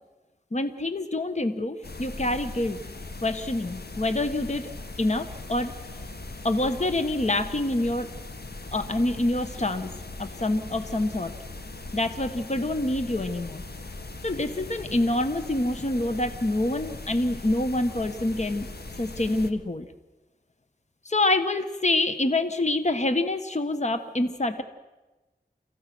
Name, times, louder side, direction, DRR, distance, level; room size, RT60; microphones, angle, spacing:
voice 1, 0.5-2.8 3.2-4.7 5.0-5.7 6.4-8.1 8.7-9.9 10.2-11.3 11.9-13.6 14.2-18.7 19.0-19.9 21.0-24.6, left 2 dB, 45° left, 9 dB, 1.4 m, -26 dB
sound 1, 1.8-19.5, left 2 dB, 75° left, 1.6 m, -40 dB
29.5 x 15.5 x 6.2 m, 1.1 s
wide cardioid pair, 40°, 17 cm